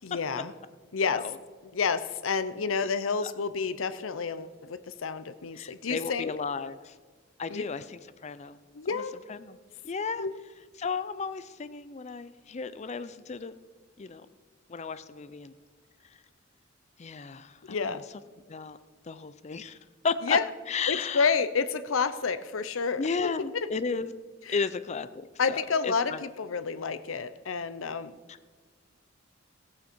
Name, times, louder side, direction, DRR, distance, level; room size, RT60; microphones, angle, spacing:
voice 1, 0.0-0.5 0.9-1.2 1.7-6.3 7.5-7.6 8.7-9.2 10.2-10.3 17.7-18.0 20.2-20.4 20.9-23.7 24.5-24.6 25.4-28.2, left 5 dB, 80° left, 13 dB, 0.7 m, -29 dB
voice 2, 5.5-6.9 7.4-8.6 8.9-9.0 9.3-9.6 9.8-10.3 10.8-13.5 14.0-14.3 14.7-15.5 17.0-18.0 18.5-18.8 19.1-19.8 20.0-20.4 20.7-21.3 23.0-24.1 24.5-25.6 25.8-26.2 28.3-28.5, left 5 dB, 35° left, 14 dB, 0.5 m, -34 dB
15.5 x 8.4 x 4.5 m, 1.4 s
head